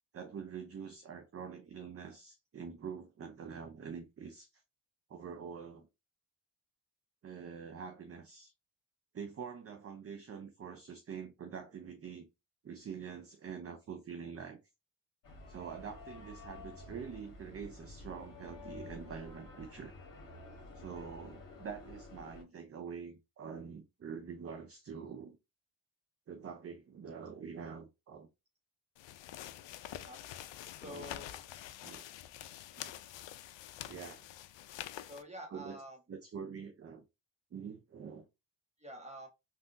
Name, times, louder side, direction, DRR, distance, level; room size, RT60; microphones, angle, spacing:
voice 1, 0.1-4.6 5.1-5.9 7.2-8.5 9.1-12.3 12.6-14.6 15.5-19.9 20.7-25.4 26.3-28.3 30.8-31.1 31.8-32.0 32.8-32.9 33.9-34.3 35.5-35.8 36.1-37.0 37.5-38.3, right 6 dB, 30° right, 0.5 m, -45 dB
sound 1, 15.2-22.4, left 2 dB, 45° left, 1.3 m, -51 dB
sound 2, 29.0-35.2, left 12 dB, 70° left, 0.5 m, -47 dB
voice 2, 30.8-31.4 35.1-36.0 38.8-39.3, equal, 15° right, 1.2 m, -47 dB
3.5 x 2.5 x 2.5 m
supercardioid pair, 60°, 47 cm